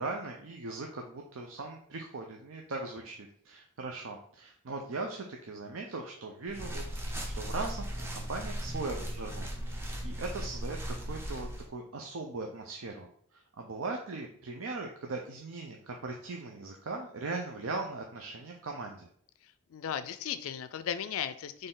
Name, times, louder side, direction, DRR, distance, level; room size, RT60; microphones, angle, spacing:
voice 1, 0.0-19.1, right 3 dB, 75° right, 2 dB, 0.6 m, -39 dB
sound 1, 6.5-11.7, equal, 10° right, 0.6 m, -37 dB
voice 2, 19.4-21.7, left 9 dB, 80° left, 13 dB, 0.4 m, -36 dB
4.2 x 3.3 x 3.8 m, 0.62 s
head